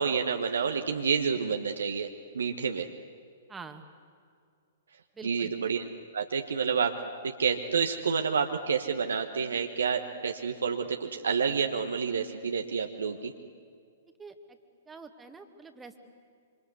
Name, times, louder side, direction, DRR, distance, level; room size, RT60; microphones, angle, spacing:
voice 1, 0.0-2.1 2.3-2.9 5.2-5.8 6.1-6.9 7.2-13.3, right 6 dB, 65° right, 4 dB, 1.3 m, -29 dB
voice 2, 3.5-3.8 5.2-5.5 14.2-14.6 14.9-16.0, right 4 dB, 10° right, 6 dB, 2.0 m, -46 dB
27.0 x 26.0 x 8.2 m, 2.3 s
figure-of-eight pair, 110°, 0 cm